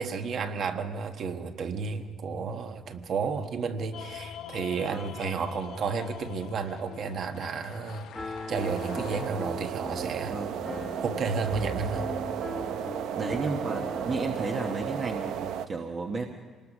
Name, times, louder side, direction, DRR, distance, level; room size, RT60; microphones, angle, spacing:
voice 1, 0.0-8.1 8.5-10.4 11.0-12.0, right 5 dB, 45° right, 7 dB, 1.3 m, -32 dB
sound 1, 3.9-9.3, left 10 dB, 65° left, 0.8 m, -44 dB
voice 2, 4.8-5.1 10.2-10.6 13.2-16.3, right 4 dB, 30° right, 3 dB, 1.1 m, -33 dB
Piano, 8.1-15.0, left 2 dB, 10° left, 1.3 m, -38 dB
sound 2, 8.5-15.7, right 9 dB, 75° right, 0.7 m, -34 dB
27.0 x 19.5 x 6.1 m, 1.5 s
cardioid pair, 175°, 0 cm